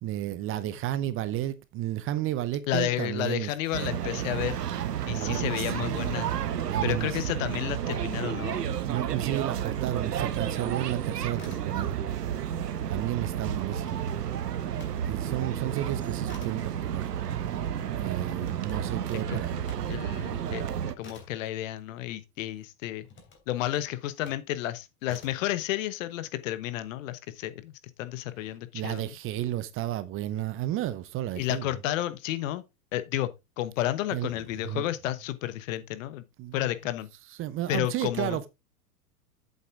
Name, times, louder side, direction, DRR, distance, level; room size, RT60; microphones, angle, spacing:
voice 1, 0.0-3.5 5.2-5.7 6.7-7.2 8.8-12.0 12.9-14.0 14.9-17.1 18.0-19.6 28.7-31.7 34.1-34.3 34.6-34.8 36.4-36.7 37.4-38.5, right 13 dB, 30° right, 0.7 m, -32 dB
voice 2, 2.7-4.6 5.1-6.3 6.8-8.6 19.3-19.4 19.9-23.1 23.5-29.2 31.4-32.6 32.9-33.3 33.6-36.2 36.5-37.1 37.7-38.4, left 14 dB, 55° left, 1.2 m, -31 dB
sound 1, 3.7-20.9, right 9 dB, 85° right, 1.0 m, -31 dB
sound 2, 11.3-12.2 12.5-15.0 15.4-22.4 23.0-24.5 25.0-25.5, left 3 dB, 25° left, 3.2 m, -53 dB
8.1 x 7.2 x 3.7 m
hypercardioid pair, 105°, 47 cm